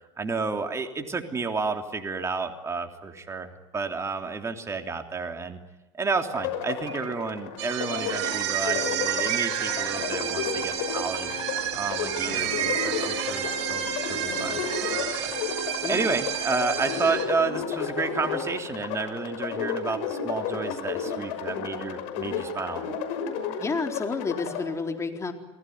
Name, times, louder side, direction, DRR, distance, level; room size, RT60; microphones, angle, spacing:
voice 1, 0.2-5.6 6.0-11.3 11.7-22.8, right 4 dB, 20° right, 4 dB, 3.4 m, -31 dB
sound 1, 6.3-24.6, left 6 dB, 65° left, 5.9 m, -32 dB
Bird, 6.9-7.3 8.1-8.6 9.3-9.9 12.2-13.2, right 9 dB, 40° right, 3.1 m, -33 dB
sound 2, 7.6-17.3, right 11 dB, 75° right, 4.7 m, -31 dB
voice 2, 23.6-25.3, left 4 dB, 20° left, 4 dB, 4.2 m, -30 dB
30.0 x 20.0 x 9.6 m, 1.0 s
supercardioid pair, 105°, 15 cm